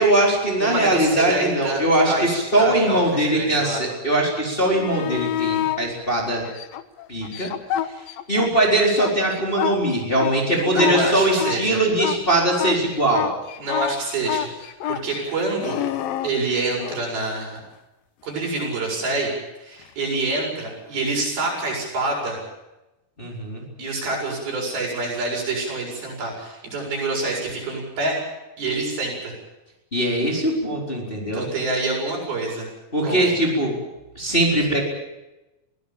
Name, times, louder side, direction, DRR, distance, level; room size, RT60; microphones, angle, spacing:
voice 1, 0.0-6.4 7.1-7.5 8.3-13.3 23.2-23.6 29.9-31.4 32.9-33.7 34.2-34.8, right 1 dB, 15° left, -1 dB, 4.2 m, -21 dB
voice 2, 0.6-3.8 10.5-11.8 13.6-15.8 16.2-17.6 18.2-19.3 19.6-22.4 23.8-28.2 28.6-29.3 31.3-32.7 33.0-33.3, right 2 dB, 75° right, -1 dB, 9.2 m, -27 dB
sound 1, 4.6-5.8 6.4-8.5 8.8-17.0 19.8-19.9, left 12 dB, 75° left, 2.8 m, -28 dB
23.5 x 16.5 x 8.8 m, 0.98 s
omnidirectional pair, 4.4 m